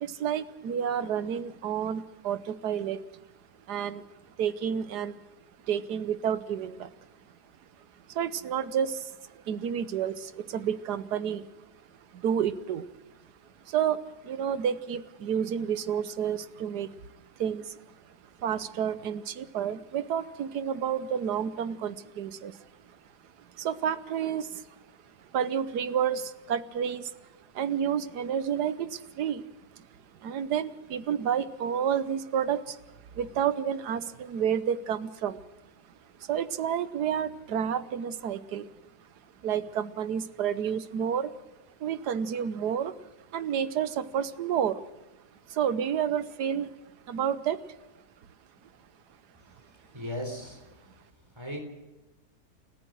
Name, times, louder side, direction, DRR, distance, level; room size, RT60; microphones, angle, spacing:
voice 1, 0.0-3.0 3.7-4.1 4.4-5.2 5.7-6.9 8.1-11.5 12.1-12.9 13.7-16.9 17.4-17.8 18.4-22.7 23.5-24.7 25.3-27.1 27.5-29.4 29.7-29.8 30.2-32.8 33.1-35.4 36.2-38.7 39.4-41.3 41.8-42.9 43.3-44.8 45.5-46.7 47.1-47.6, right 8 dB, 85° right, 15 dB, 1.5 m, -30 dB
voice 2, 49.9-50.7 51.4-51.6, left 1 dB, 15° right, 5 dB, 3.8 m, -36 dB
29.5 x 14.0 x 6.3 m, 1.1 s
omnidirectional pair, 1.7 m